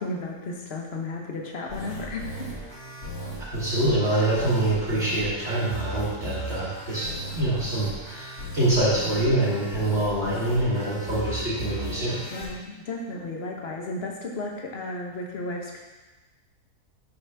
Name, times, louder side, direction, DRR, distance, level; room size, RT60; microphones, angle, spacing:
voice 1, 0.0-2.5 12.3-15.8, left 2 dB, 50° left, 0 dB, 1.0 m, -34 dB
sound 1, 1.7-12.5, equal, 75° left, 2.6 m, -36 dB
voice 2, 3.5-7.1 7.3-12.2, right 1 dB, 50° right, -10 dB, 1.6 m, -25 dB
5.9 x 5.8 x 3.3 m, 1.2 s
omnidirectional pair, 1.6 m